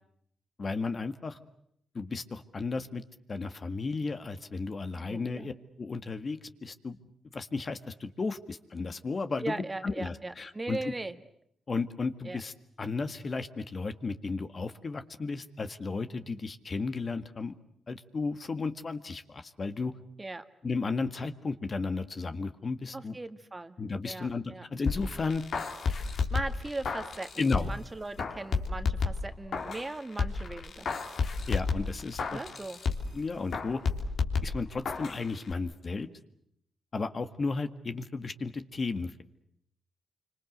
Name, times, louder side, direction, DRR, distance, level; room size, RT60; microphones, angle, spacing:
voice 1, 0.6-1.4 1.9-3.0 3.3-7.0 7.3-10.9 11.7-17.5 17.9-19.9 20.6-23.1 23.8-25.4 27.4-27.7 31.5-32.4 33.1-33.8 34.4-36.1 36.9-39.2, left 4 dB, 45° left, 9 dB, 1.8 m, -34 dB
voice 2, 5.0-5.5 9.4-11.2 12.2-12.4 20.2-20.4 22.9-23.8 24.0-24.7 26.1-30.9 32.3-32.8, right 2 dB, 25° right, 10 dB, 1.7 m, -39 dB
sound 1, 24.9-27.8 28.2-29.9 30.2-33.2 33.5-35.2 35.5-35.6, left 4 dB, 70° left, 3.4 m, -31 dB
27.0 x 25.5 x 8.1 m, 0.72 s
cardioid pair, 70°, 0 cm